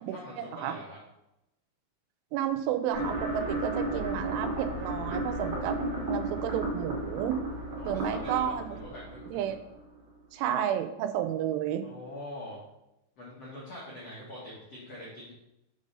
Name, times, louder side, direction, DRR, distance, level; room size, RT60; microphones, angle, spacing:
voice 1, 0.1-1.0 7.8-9.5 11.8-12.6 13.2-15.3, left 1 dB, 85° left, -6 dB, 1.4 m, -44 dB
voice 2, 2.3-5.8 6.1-7.4 7.8-8.7 9.3-9.6 10.3-11.8, right 10 dB, 85° right, 8 dB, 3.1 m, -31 dB
sound 1, 2.9-10.0, right 1 dB, 40° right, 2.6 m, -34 dB
6.8 x 5.3 x 5.4 m, 0.89 s
omnidirectional pair, 5.5 m